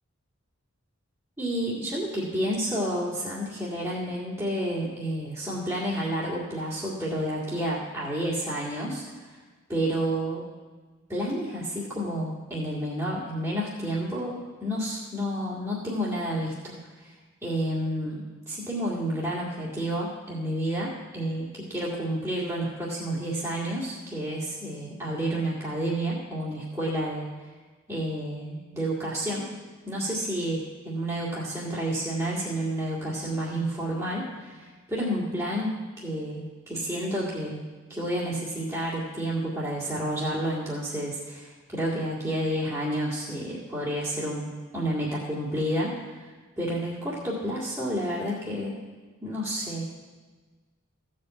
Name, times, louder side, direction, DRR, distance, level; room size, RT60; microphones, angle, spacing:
voice 1, 1.4-9.4 9.7-10.5 11.1-17.1 17.4-27.3 27.9-29.5 29.8-37.6 37.9-48.8 49.2-49.9, right 1 dB, 15° right, -7 dB, 2.1 m, -30 dB
15.0 x 5.3 x 7.7 m, 1.4 s
head